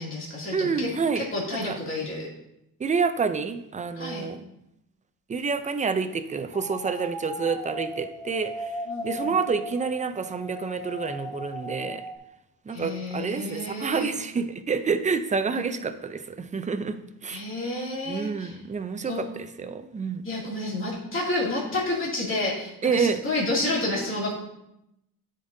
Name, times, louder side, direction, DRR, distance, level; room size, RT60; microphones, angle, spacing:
voice 1, 0.0-0.9 1.1-2.3 4.0-4.3 8.9-9.4 12.7-14.1 17.3-18.5 19.0-19.2 20.2-24.3, left 2 dB, 35° left, -5 dB, 2.6 m, -30 dB
voice 2, 0.5-1.3 1.6-1.8 2.8-4.4 5.3-8.7 9.0-12.0 12.7-17.0 17.2-17.4 18.1-20.2 22.8-23.2, right 5 dB, 20° right, 9 dB, 0.4 m, -28 dB
Jules' Musical Saw no voices, 6.5-12.2, left 1 dB, 10° left, 0.7 m, -37 dB
13.0 x 5.2 x 2.7 m, 0.83 s
wide cardioid pair, 160°, 35 cm